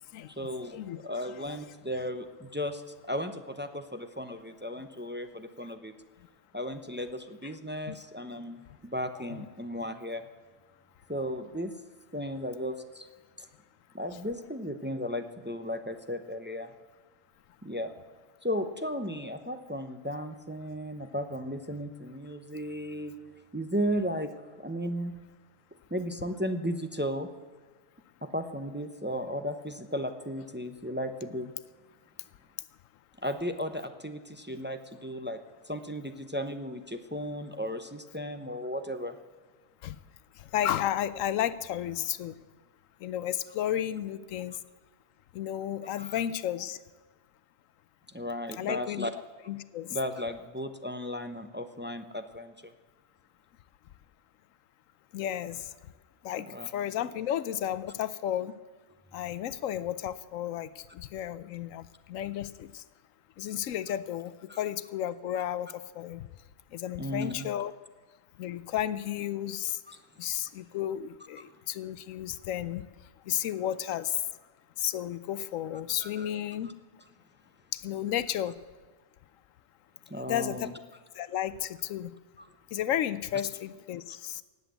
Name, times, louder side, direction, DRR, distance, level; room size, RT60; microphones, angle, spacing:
voice 1, 0.4-5.9 6.5-8.6 8.8-10.2 11.1-11.7 12.1-13.1 13.4-13.5 13.9-16.7 17.6-17.9 18.4-23.1 23.5-24.3 24.6-25.2 25.9-27.3 28.2-31.5 33.2-35.4 35.7-39.2 46.0-46.2 48.1-49.1 49.9-52.7 56.5-56.7 64.5-64.6 67.0-67.5 69.9-70.0 76.0-76.3 80.1-80.7 82.4-82.5, equal, 10° right, 7 dB, 0.6 m, -35 dB
voice 2, 40.4-42.4 43.0-44.6 45.3-46.8 48.6-49.1 49.5-50.0 55.1-55.7 56.2-58.5 59.1-62.8 63.4-66.2 66.7-67.7 68.4-69.8 70.2-72.8 73.3-74.2 74.8-76.7 77.7-78.5 80.1-80.7 81.2-82.1 82.7-84.4, left 11 dB, 85° left, 16 dB, 1.0 m, -33 dB
18.0 x 8.1 x 8.2 m, 1.4 s
omnidirectional pair, 1.3 m